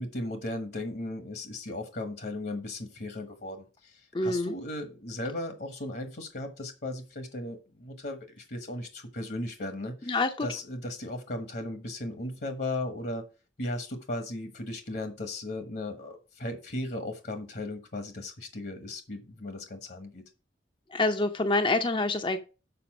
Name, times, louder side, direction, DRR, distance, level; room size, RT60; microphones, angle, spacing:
voice 1, 0.0-13.3 13.6-20.2, left 1 dB, 60° left, 7 dB, 1.2 m, -36 dB
voice 2, 4.1-4.5 10.1-10.5 20.9-22.4, left 2 dB, 30° left, 7 dB, 0.6 m, -26 dB
6.9 x 5.1 x 6.0 m, 0.32 s
head